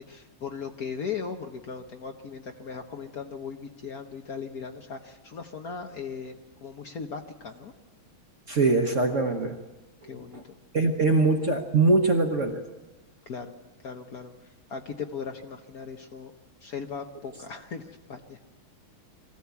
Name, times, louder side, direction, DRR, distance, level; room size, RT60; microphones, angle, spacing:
voice 1, 0.0-7.7 10.0-10.5 13.3-13.6 13.8-16.3 16.6-18.4, left 6 dB, 55° left, 5 dB, 1.2 m, -38 dB
voice 2, 8.5-9.6 10.3-10.4 10.7-12.7, right 3 dB, 45° right, 4 dB, 1.2 m, -23 dB
23.0 x 15.0 x 8.3 m, 1.2 s
omnidirectional pair, 2.3 m